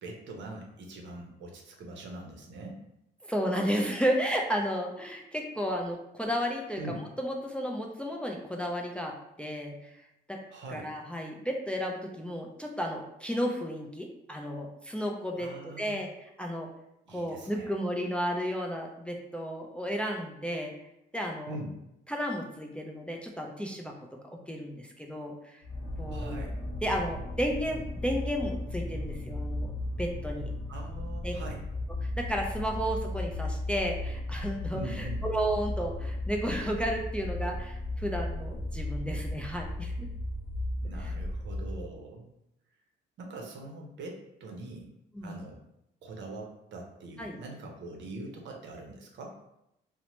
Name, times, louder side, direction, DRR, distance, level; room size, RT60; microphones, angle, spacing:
voice 1, 0.0-2.8 6.8-7.0 10.5-10.9 15.4-16.0 17.1-17.7 21.5-21.7 26.1-26.5 30.7-31.6 34.7-35.2 40.8-42.3 43.2-44.9 45.2-45.6 46.0-49.4, right 2 dB, 70° right, 1 dB, 0.7 m, -42 dB
voice 2, 3.3-9.7 10.3-10.4 10.7-16.1 16.4-16.7 17.1-20.8 21.1-21.6 22.1-24.0 24.3-25.6 26.0-26.4 26.8-29.7 30.0-30.5 31.2-31.3 32.0-40.1 41.0-41.1 45.2-45.4 47.2-47.4, equal, 5° left, 1 dB, 0.3 m, -33 dB
sound 1, 25.6-41.9, left 1 dB, 35° left, 0.7 m, -35 dB
2.8 x 2.1 x 2.9 m, 0.83 s
cardioid pair, 90°, 20 cm